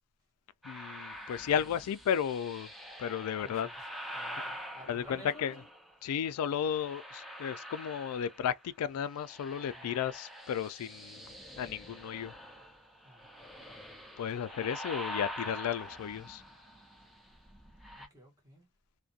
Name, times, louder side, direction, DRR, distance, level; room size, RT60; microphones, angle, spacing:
voice 1, 0.6-2.7 3.0-3.7 4.9-5.5 6.0-11.2 11.6-12.3 14.2-16.4, left 8 dB, 85° left, 0.3 m, -34 dB
sound 1, 0.6-6.0 6.5-8.7 9.0-18.1, equal, ahead, 0.5 m, -45 dB
voice 2, 3.4-5.7 9.7-9.9 13.0-13.3 14.3-14.4 18.0-18.7, equal, 15° right, 1.0 m, -54 dB
2.4 x 2.2 x 2.5 m
head